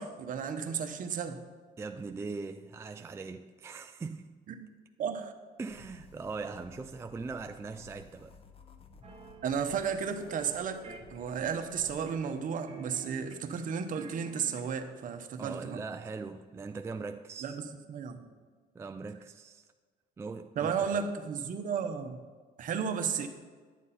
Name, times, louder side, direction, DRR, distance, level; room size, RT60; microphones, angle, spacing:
voice 1, 0.0-1.4 4.5-4.7 5.0-5.3 9.4-10.8 11.1-15.8 17.4-17.6 17.9-18.3 20.6-22.2 22.6-23.3, right 6 dB, 50° right, 0.9 m, -33 dB
voice 2, 1.8-4.3 5.6-8.3 15.4-17.6 18.7-19.7 20.2-21.1, right 4 dB, 15° right, 0.3 m, -40 dB
sound 1, 5.7-12.1, left 3 dB, 35° left, 0.9 m, -55 dB
sound 2, 9.0-9.7 10.2-10.6 10.8-12.4 12.7-13.6 13.9-14.9, right 5 dB, 35° right, 1.2 m, -48 dB
11.0 x 7.4 x 4.2 m
cardioid pair, 110°, 17 cm